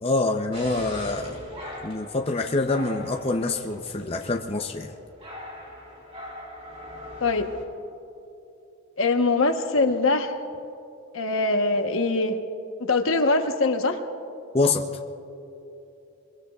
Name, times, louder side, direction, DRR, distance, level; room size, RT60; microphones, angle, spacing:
voice 1, 0.0-1.4 1.8-4.9 14.5-14.9, left 3 dB, 25° left, 2 dB, 0.6 m, -25 dB
sound 1, 0.5-7.6, left 1 dB, 30° right, 2.9 m, -41 dB
voice 2, 9.0-10.3 11.1-12.3 12.9-14.0, left 3 dB, 65° left, 5 dB, 1.1 m, -22 dB
26.5 x 23.0 x 2.4 m, 2.9 s
head